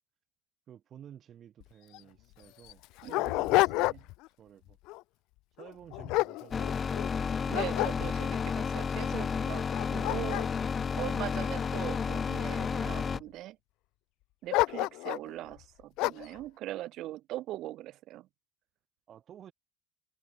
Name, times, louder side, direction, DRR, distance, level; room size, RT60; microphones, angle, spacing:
voice 1, 0.7-2.8 3.1-3.9 4.4-4.8 5.6-6.8 19.1-19.5, right 10 dB, 40° right, 5.2 m, -52 dB
Dog, 1.6-1.7 1.9-2.0 2.6-4.3 4.7-5.0 5.6-7.1 7.5-8.4 9.0-9.1 9.6-11.9 12.6-13.2 14.5-15.3 16.0-16.4, left 21 dB, 70° left, 0.6 m, -30 dB
voice 2, 3.0-4.1 7.5-10.4 11.0-13.6 14.4-18.3, right 15 dB, 55° right, 1.4 m, -41 dB
sound 1, 6.5-13.2, left 6 dB, 25° left, 0.9 m, -31 dB
cardioid pair, 125°, 0 cm